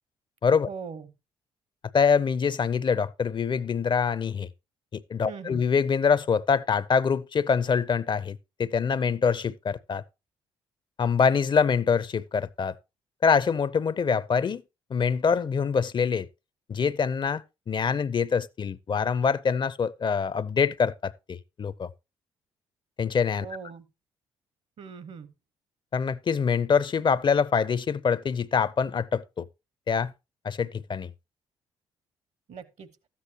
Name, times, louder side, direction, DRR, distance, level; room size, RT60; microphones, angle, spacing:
voice 1, 0.7-1.1 5.3-5.6 23.4-23.8 24.8-25.3 32.5-32.9, right 6 dB, 60° right, 1.1 m, -40 dB
voice 2, 1.9-4.5 4.9-10.0 11.0-12.7 13.2-14.6 14.9-16.3 16.7-21.9 23.0-23.5 25.9-29.5 29.9-30.1 30.4-31.1, left 6 dB, 40° left, 0.5 m, -25 dB
13.0 x 8.5 x 2.9 m
hypercardioid pair, 50°, 13 cm